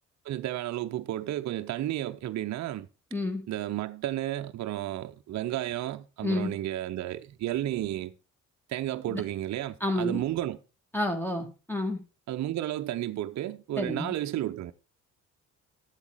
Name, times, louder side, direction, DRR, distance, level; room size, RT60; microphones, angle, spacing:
voice 1, 0.2-2.9 3.5-8.1 8.7-10.6 12.3-14.7, right 13 dB, 45° right, 0.7 m, -32 dB
voice 2, 3.1-3.4 6.2-6.5 9.1-9.2 9.8-10.2 10.9-12.0 13.8-14.1, left 1 dB, 5° left, 1.7 m, -30 dB
12.0 x 8.3 x 4.6 m
figure-of-eight pair, 45°, 39 cm